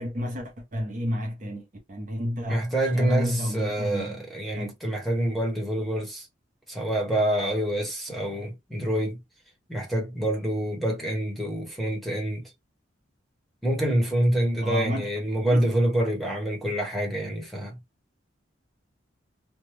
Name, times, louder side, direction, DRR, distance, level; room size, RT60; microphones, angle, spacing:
voice 1, 0.0-2.6 2.9-4.2 4.6-4.7 14.6-15.1 15.5-15.7, equal, 40° right, 0.9 m, -30 dB
voice 2, 2.5-6.3 6.7-9.2 9.7-12.5 13.6-17.8, right 1 dB, ahead, 1.0 m, -26 dB
3.2 x 2.1 x 3.3 m
head